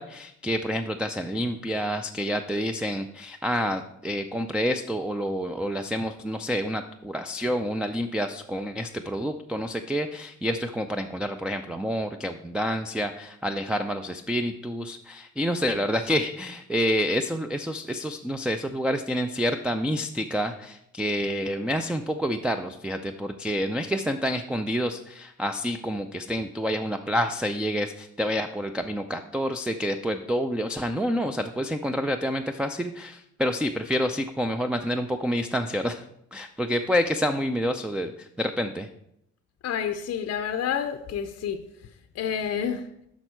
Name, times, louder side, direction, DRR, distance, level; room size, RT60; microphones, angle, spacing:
voice 1, 0.0-36.0 36.3-38.9, equal, 5° right, 3 dB, 0.3 m, -28 dB
voice 2, 39.6-41.6 42.1-42.9, left 8 dB, 55° left, 8 dB, 0.5 m, -29 dB
6.2 x 5.9 x 4.4 m, 0.77 s
cardioid pair, 90°, 30 cm